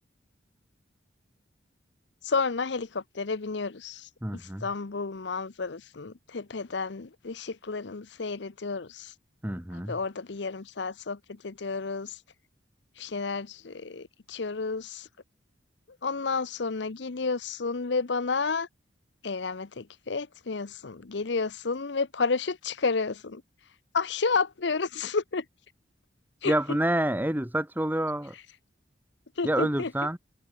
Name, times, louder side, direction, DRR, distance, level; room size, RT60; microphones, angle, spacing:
voice 1, 2.2-4.1 4.4-9.1 9.9-12.2 13.0-15.1 16.0-18.7 19.2-23.4 23.9-25.4 26.4-26.5 29.4-29.9, left 4 dB, 70° left, 0.8 m, -31 dB
voice 2, 4.2-4.7 9.4-10.0 26.4-28.3 29.4-30.2, right 1 dB, 10° right, 1.3 m, -28 dB
head